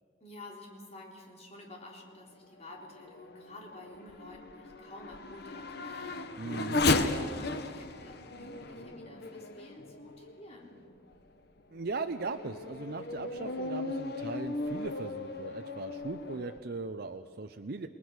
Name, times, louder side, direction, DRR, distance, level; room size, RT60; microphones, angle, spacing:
voice 1, 0.2-10.8, left 1 dB, 35° left, 0 dB, 3.7 m, -50 dB
Race car auto racing / Accelerating revving vroom, 2.6-10.5 11.1-11.2 11.8-16.6, left 2 dB, 55° left, 1.1 m, -35 dB
voice 2, 6.4-6.8 11.7-17.9, right 3 dB, 55° right, 7 dB, 0.7 m, -38 dB
29.0 x 19.5 x 6.3 m, 2.2 s
head